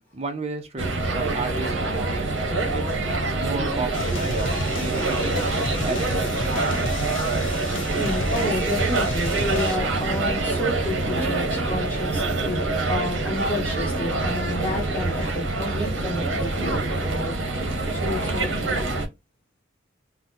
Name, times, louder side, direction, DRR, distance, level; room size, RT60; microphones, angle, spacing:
voice 1, 0.1-2.3 2.7-2.9 3.3-5.3 5.8-6.3, right 3 dB, 30° right, 0.6 m, -32 dB
sound 1, 0.8-19.1, right 2 dB, 65° right, 0.8 m, -25 dB
sound 2, 3.9-9.8, left 2 dB, 70° left, 0.6 m, -33 dB
voice 2, 8.0-17.6 17.9-18.9, left 1 dB, 10° left, 1.1 m, -31 dB
sound 3, 9.8-15.3, right 1 dB, 15° right, 0.9 m, -46 dB
3.9 x 2.1 x 2.8 m
head